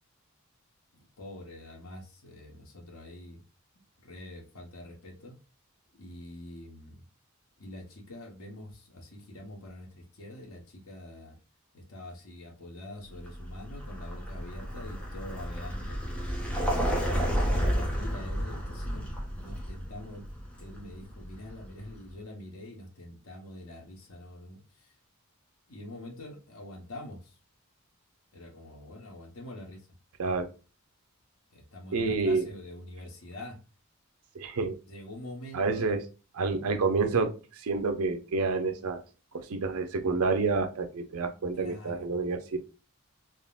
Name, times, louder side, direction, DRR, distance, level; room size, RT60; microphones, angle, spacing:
voice 1, 0.9-3.4 4.0-5.4 6.0-7.0 7.6-11.4 11.7-16.0 17.0-20.3 20.6-25.0 25.7-27.4 28.3-29.9 31.5-33.6 34.8-36.0 41.5-42.1, left 1 dB, 75° left, 0.9 m, -45 dB
Vehicle, 13.1-21.9, equal, 5° left, 0.6 m, -32 dB
voice 2, 31.9-32.5 34.3-34.8 35.5-36.0 36.4-39.0 39.3-42.6, right 4 dB, 90° right, 0.5 m, -28 dB
3.6 x 2.1 x 2.3 m
head